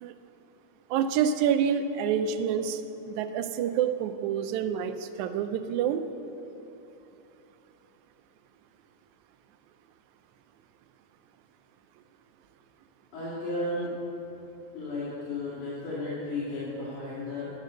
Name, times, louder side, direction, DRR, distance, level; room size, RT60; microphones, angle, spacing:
voice 1, 0.9-6.0, right 8 dB, 80° right, 9 dB, 1.9 m, -27 dB
voice 2, 13.1-13.9 14.7-17.5, left 2 dB, 85° left, -10 dB, 3.7 m, -34 dB
11.0 x 6.5 x 6.3 m, 2.9 s
omnidirectional pair, 3.4 m